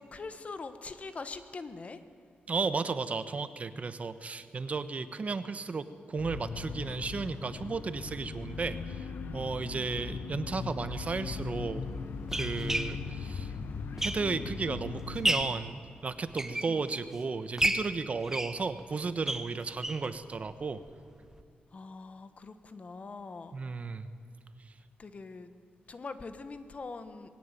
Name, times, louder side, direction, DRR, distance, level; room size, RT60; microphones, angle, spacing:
voice 1, 0.0-2.0 9.6-9.9 16.7-16.8 21.7-23.6 25.0-25.5 25.9-27.3, left 4 dB, 40° left, 10 dB, 1.4 m, -43 dB
voice 2, 2.5-11.8 12.3-13.5 14.0-20.8 23.5-24.1, right 4 dB, 45° right, 12 dB, 1.1 m, -34 dB
sound 1, 6.2-15.5, left 5 dB, 80° left, 1.3 m, -39 dB
sound 2, 10.7-10.8 11.6-14.6 15.0-15.6 16.2-17.1 17.6-20.1 20.5-20.6 20.9-21.0 21.3-21.4, right 1 dB, 15° right, 1.2 m, -33 dB
21.5 x 17.0 x 9.1 m, 2.4 s
wide cardioid pair, 110°, 3 cm